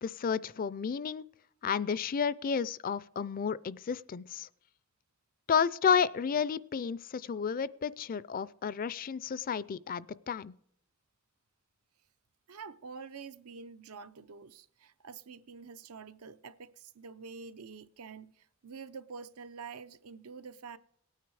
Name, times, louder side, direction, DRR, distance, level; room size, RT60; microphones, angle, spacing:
voice 1, 0.0-1.2 1.6-4.5 5.5-10.5, left 6 dB, 40° left, 0.4 m, -31 dB
voice 2, 12.5-20.8, right 5 dB, 90° right, 0.7 m, -47 dB
18.0 x 9.2 x 4.8 m
head